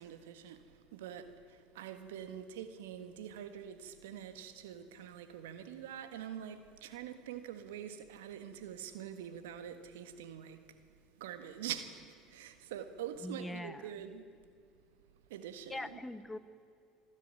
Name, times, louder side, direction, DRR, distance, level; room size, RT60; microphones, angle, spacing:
voice 1, 0.0-10.6 11.2-14.2 15.3-16.0, right 9 dB, 80° right, 1.5 m, -45 dB
voice 2, 13.2-13.9 15.7-16.4, left 1 dB, 15° left, 1.1 m, -42 dB
25.5 x 12.0 x 9.0 m
hypercardioid pair, 80°, 0 cm